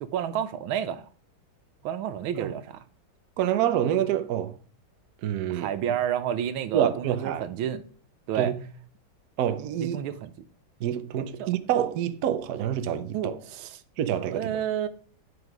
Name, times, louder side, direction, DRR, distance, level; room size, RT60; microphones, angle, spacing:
voice 1, 0.0-1.1 1.8-2.8 5.5-7.8 8.3-8.5 9.8-10.3 11.4-11.5 13.1-13.8 14.3-14.9, right 9 dB, 85° right, 1.5 m, -30 dB
voice 2, 3.4-4.5 5.2-5.7 6.7-7.4 8.3-8.5 9.4-10.0 10.8-13.4 14.0-14.6, right 10 dB, 65° right, 1.0 m, -27 dB
9.7 x 4.9 x 4.7 m
omnidirectional pair, 2.2 m